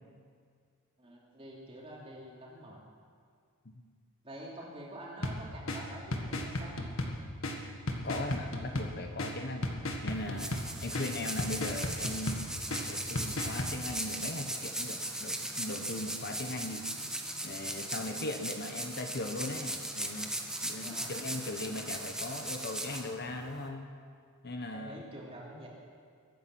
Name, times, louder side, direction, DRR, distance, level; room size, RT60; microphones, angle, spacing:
voice 1, 1.0-2.8 4.2-6.8 20.8-21.1 24.7-25.7, right 1 dB, 25° right, -4 dB, 3.2 m, -47 dB
sound 1, 5.2-13.7, left 1 dB, 65° left, 1.7 m, -37 dB
voice 2, 8.0-9.7 10.0-16.8 17.4-20.3 20.6-23.9 24.4-25.1, left 2 dB, 45° left, 6 dB, 1.0 m, -39 dB
sound 2, 10.1-23.7, right 1 dB, 5° right, 1.0 m, -38 dB
22.5 x 10.0 x 6.2 m, 2.1 s
head